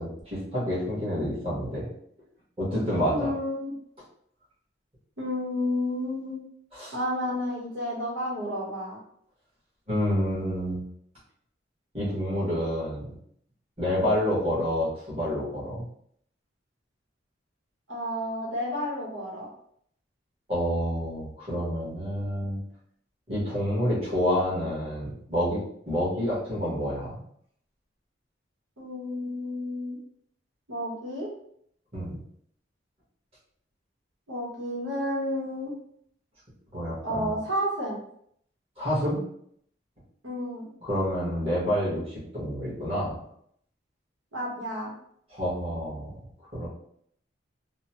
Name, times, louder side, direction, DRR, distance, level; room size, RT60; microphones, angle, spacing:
voice 1, 0.0-1.9 2.6-3.3 6.8-6.9 9.9-10.8 11.9-13.1 13.8-15.8 20.5-22.6 23.3-27.2 31.9-32.2 36.7-37.3 38.8-39.2 40.8-43.2 45.3-46.1 46.5-46.7, equal, 30° right, -8 dB, 1.2 m, -28 dB
voice 2, 3.1-3.7 5.2-6.4 6.9-9.0 17.9-19.5 28.8-30.0 30.7-31.3 34.3-35.7 37.0-38.0 40.2-40.7 44.3-44.9, left 1 dB, 85° right, -5 dB, 1.0 m, -31 dB
2.9 x 2.0 x 2.8 m, 0.68 s
head